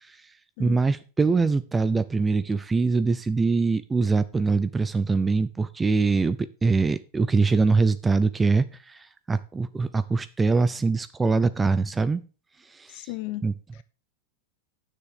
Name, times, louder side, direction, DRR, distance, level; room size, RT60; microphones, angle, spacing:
voice 1, 0.6-9.0 9.3-12.2 12.8-13.0 13.4-13.5, right 4 dB, 10° right, 0.4 m, -23 dB
voice 2, 12.9-13.8, left 18 dB, 50° left, 0.9 m, -36 dB
9.6 x 7.0 x 4.8 m
supercardioid pair, 150°, 0 cm